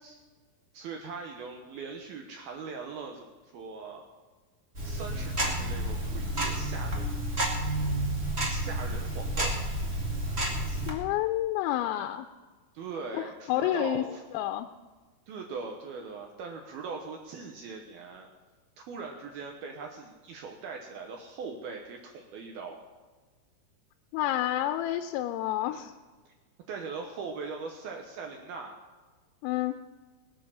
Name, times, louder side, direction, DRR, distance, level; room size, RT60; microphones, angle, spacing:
voice 1, 0.7-3.3 3.5-4.0 4.8-7.2 8.4-9.5 12.7-14.2 15.3-18.3 18.8-22.8 25.6-25.9 26.7-28.8, right 4 dB, 75° right, 2 dB, 2.3 m, -40 dB
Tick-tock, 4.7-10.9, right 1 dB, 60° right, 0.6 m, -30 dB
voice 2, 10.7-12.3 13.5-14.0 14.3-14.7 24.1-25.9 29.4-29.8, left 13 dB, 90° left, 7 dB, 3.4 m, -29 dB
21.0 x 7.7 x 7.3 m, 1.3 s
omnidirectional pair, 5.9 m